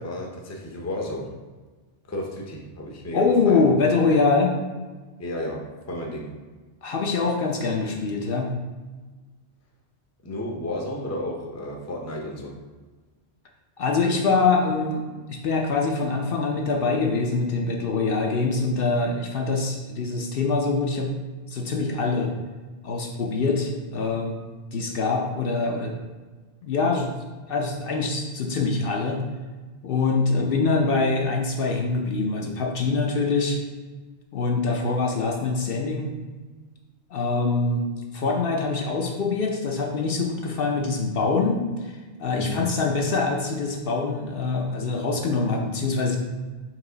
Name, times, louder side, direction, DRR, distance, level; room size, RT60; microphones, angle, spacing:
voice 1, 0.0-1.3 2.1-3.6 5.2-5.6 5.9-6.3 10.2-12.5 42.3-42.7, left 1 dB, 20° left, 0 dB, 0.5 m, -32 dB
voice 2, 3.1-4.6 6.8-8.5 13.8-21.1 21.5-22.3 22.8-24.4 24.7-26.0 26.6-27.1 27.5-29.2 29.8-33.6 34.3-36.1 37.1-37.9 38.1-41.9 42.2-46.2, left 4 dB, 65° left, 1 dB, 0.7 m, -24 dB
4.6 x 2.9 x 3.9 m, 1.3 s
omnidirectional pair, 1.1 m